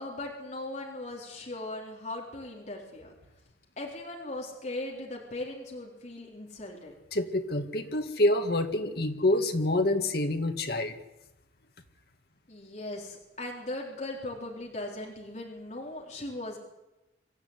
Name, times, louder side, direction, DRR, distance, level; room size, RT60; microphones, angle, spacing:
voice 1, 0.0-3.1 3.8-6.9 12.5-16.6, left 2 dB, 40° left, -1 dB, 4.0 m, -38 dB
voice 2, 7.1-10.9, left 1 dB, 60° left, 6 dB, 2.0 m, -27 dB
25.5 x 13.5 x 9.8 m, 0.96 s
head